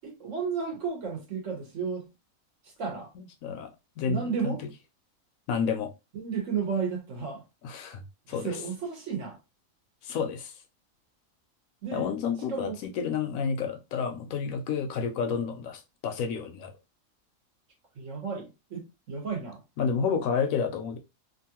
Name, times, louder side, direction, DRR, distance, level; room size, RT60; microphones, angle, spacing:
voice 1, 0.0-2.1 2.6-3.1 4.0-4.6 6.1-7.4 8.3-9.4 11.8-12.1 12.5-12.8 17.9-19.6, right 6 dB, 60° right, 1.4 m, -33 dB
voice 2, 4.0-4.5 5.5-5.9 7.6-8.5 10.0-10.5 11.9-16.7 19.8-21.0, left 6 dB, 75° left, 1.0 m, -30 dB
3.0 x 2.5 x 2.8 m
omnidirectional pair, 1.5 m